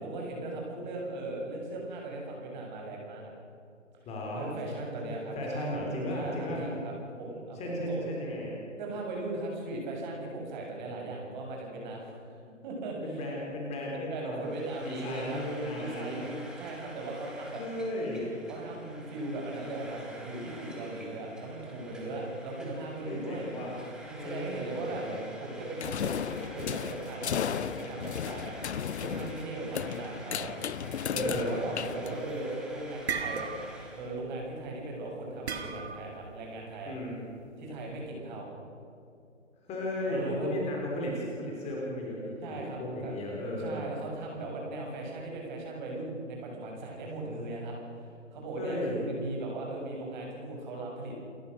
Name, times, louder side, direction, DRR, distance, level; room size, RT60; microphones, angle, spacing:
voice 1, 0.0-3.3 4.3-5.7 6.1-8.1 8.8-12.3 12.6-13.2 14.1-17.6 18.5-23.5 24.1-25.1 25.4-30.5 30.8-36.9 37.6-38.5 40.0-40.5 42.4-43.1 43.6-51.2, right 2 dB, 35° right, -1 dB, 7.2 m, -38 dB
voice 2, 4.1-4.7 5.3-6.6 7.6-8.6 13.0-14.4 14.8-16.3 17.6-18.3 23.1-23.7 24.2-25.2 31.1-31.6 36.9-37.2 39.7-43.8 48.6-49.0, left 1 dB, 15° left, -2 dB, 4.0 m, -35 dB
Frying (food), 14.4-34.1, right 1 dB, ahead, 2.9 m, -49 dB
sound 1, 25.8-32.5, left 9 dB, 60° left, 0.6 m, -35 dB
sound 2, 32.5-34.5 35.5-36.2, right 5 dB, 55° right, 2.4 m, -35 dB
28.5 x 14.5 x 6.4 m, 2.6 s
figure-of-eight pair, 135°, 38 cm